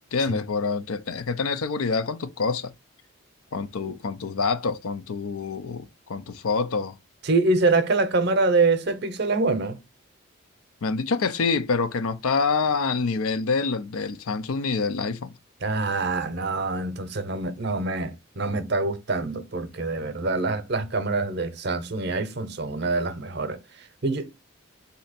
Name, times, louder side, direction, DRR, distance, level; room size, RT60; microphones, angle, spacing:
voice 1, 0.1-2.7 3.5-7.0 10.8-15.3, left 4 dB, 85° left, 0.5 m, -26 dB
voice 2, 7.2-9.8 15.6-23.6 24.0-24.4, right 3 dB, 50° right, 0.7 m, -25 dB
4.3 x 2.7 x 4.1 m
head